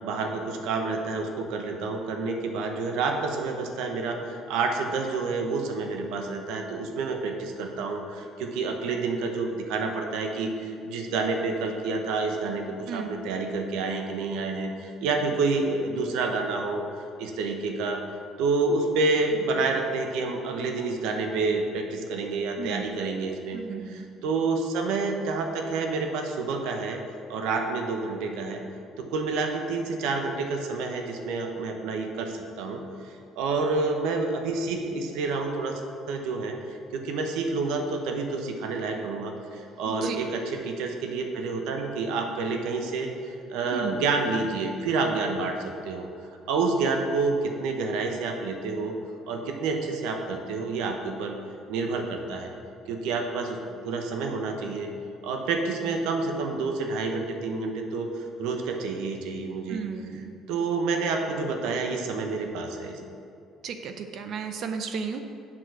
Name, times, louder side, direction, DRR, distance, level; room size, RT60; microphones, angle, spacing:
voice 1, 0.0-18.0 18.4-27.0 27.3-28.6 29.0-35.8 36.1-46.1 46.5-48.9 49.3-51.4 51.7-52.5 52.9-54.9 55.2-59.8 60.5-63.0, right 3 dB, 90° right, 4 dB, 1.0 m, -29 dB
voice 2, 22.6-22.9 23.5-24.0 39.9-40.2 43.7-44.0 59.7-60.4 63.6-65.2, right 6 dB, 40° right, 7 dB, 0.5 m, -34 dB
7.6 x 6.3 x 6.2 m, 2.5 s
cardioid pair, 175°, 0 cm